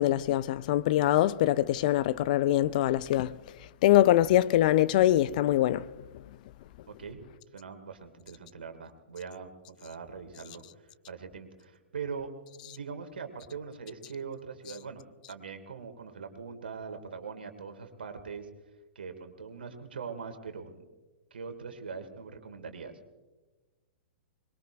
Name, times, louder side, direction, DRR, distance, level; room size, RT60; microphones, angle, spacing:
voice 1, 0.0-3.4 3.8-5.9, left 13 dB, 45° left, 0.5 m, -23 dB
voice 2, 6.9-7.2 7.5-12.3 12.6-18.5 19.0-20.8 21.3-23.0, right 5 dB, 70° right, 2.2 m, -42 dB
24.0 x 21.5 x 2.5 m
figure-of-eight pair, 105°, 6 cm